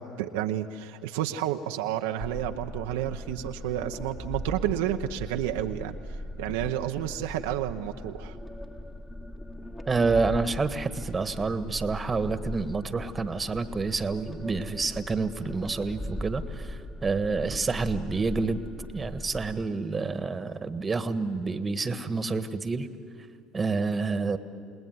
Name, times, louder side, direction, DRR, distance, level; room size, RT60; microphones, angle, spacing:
voice 1, 0.0-8.4, right 12 dB, 80° right, 5 dB, 0.9 m, -31 dB
sound 1, 2.2-19.7, left 1 dB, 15° left, 1.8 m, -39 dB
voice 2, 9.9-18.6 18.9-22.9 23.5-24.4, right 4 dB, 25° right, 11 dB, 1.5 m, -28 dB
29.0 x 19.0 x 9.5 m, 2.5 s
hypercardioid pair, 75°, 0 cm